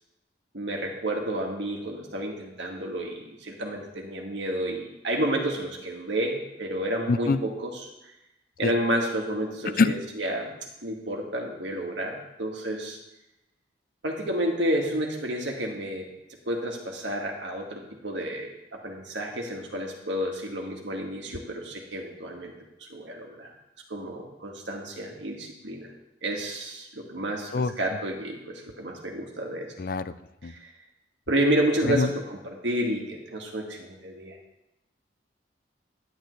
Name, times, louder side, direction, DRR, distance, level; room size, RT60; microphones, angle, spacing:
voice 1, 0.5-7.9 8.6-10.5 10.8-13.0 14.0-16.1 16.5-22.5 22.9-23.5 23.9-25.9 26.2-29.7 30.4-30.5 31.3-34.4, right 1 dB, 85° right, 1 dB, 1.8 m, -30 dB
voice 2, 7.1-7.4 8.6-8.7 9.8-9.9 27.5-27.7 29.8-30.1 30.4-30.5 31.8-32.1, left 4 dB, 50° left, 14 dB, 0.4 m, -24 dB
10.5 x 10.5 x 3.2 m, 0.91 s
head